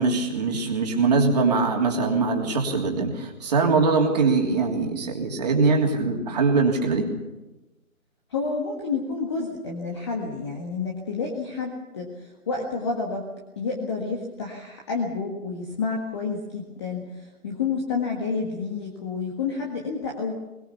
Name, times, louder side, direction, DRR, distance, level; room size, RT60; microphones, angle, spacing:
voice 1, 0.0-7.1, right 4 dB, 30° right, 1 dB, 3.1 m, -22 dB
voice 2, 8.3-13.3 13.6-20.3, left 4 dB, 20° left, 0 dB, 1.7 m, -29 dB
22.5 x 20.0 x 7.0 m, 1.1 s
figure-of-eight pair, 160°, 43 cm